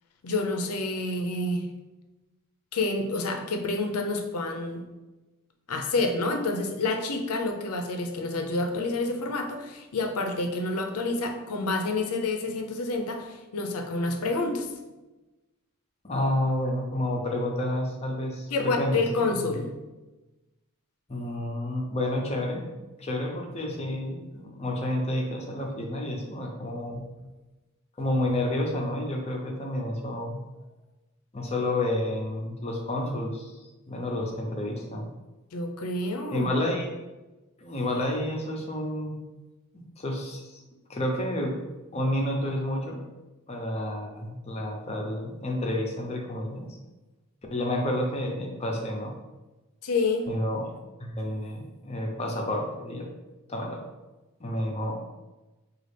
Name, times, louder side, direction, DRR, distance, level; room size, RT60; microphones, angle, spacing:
voice 1, 0.2-1.7 2.7-4.8 5.7-14.7 18.5-19.7 35.5-36.5 49.8-50.3, left 2 dB, 90° left, 4 dB, 0.6 m, -28 dB
voice 2, 16.0-19.4 21.1-22.7 23.0-27.0 28.0-30.4 31.3-33.6 33.9-35.1 36.3-36.9 37.6-39.2 39.7-40.6 40.9-41.6 41.9-43.0 43.5-46.6 47.5-49.1 50.3-50.6 51.0-53.1 53.5-53.8 54.4-54.9, left 1 dB, 30° left, 1 dB, 0.6 m, -30 dB
5.1 x 2.4 x 3.2 m, 1.1 s
head